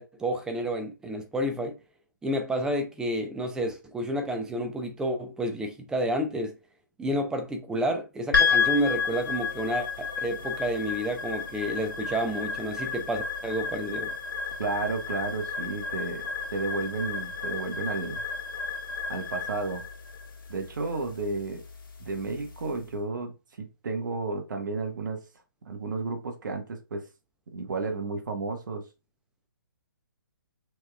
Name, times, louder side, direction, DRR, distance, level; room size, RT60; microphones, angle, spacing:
voice 1, 0.0-1.8 2.2-6.6 7.0-14.1, equal, 5° right, 0.6 m, -30 dB
sound 1, 8.3-22.7, left 5 dB, 90° left, 1.6 m, -31 dB
voice 2, 14.6-16.2 16.5-18.2 19.1-19.8 20.5-21.6 22.0-25.2 25.7-27.0 27.5-28.8, right 3 dB, 65° right, 1.2 m, -32 dB
6.2 x 3.2 x 2.3 m
hypercardioid pair, 140°, 11 cm